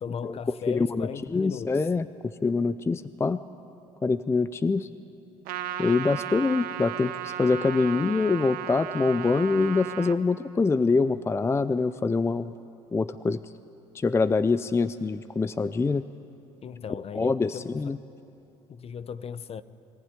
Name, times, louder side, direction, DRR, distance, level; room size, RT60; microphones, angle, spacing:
voice 1, 0.0-1.9 16.6-18.0 18.7-19.6, left 7 dB, 40° left, 0.7 m, -37 dB
voice 2, 0.7-3.4 4.0-4.9 5.8-12.5 12.9-13.4 13.9-16.0 17.1-18.0, left 4 dB, 15° left, 0.5 m, -25 dB
Trumpet, 5.5-10.2, right 12 dB, 70° right, 1.0 m, -35 dB
23.0 x 15.0 x 9.6 m
supercardioid pair, 75°, 15 cm